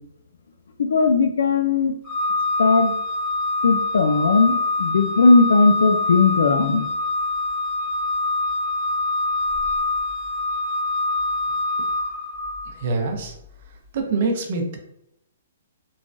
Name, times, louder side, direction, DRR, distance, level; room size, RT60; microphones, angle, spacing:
voice 1, 0.8-1.9 2.6-2.9 3.6-6.9, left 4 dB, 75° left, 6 dB, 0.3 m, -18 dB
Organ, 2.0-12.8, left 2 dB, 10° left, 0.9 m, -25 dB
voice 2, 12.8-13.4 13.9-14.8, right 3 dB, 40° right, 3 dB, 0.6 m, -24 dB
3.1 x 2.2 x 2.5 m, 0.79 s
hypercardioid pair, 170°, 0 cm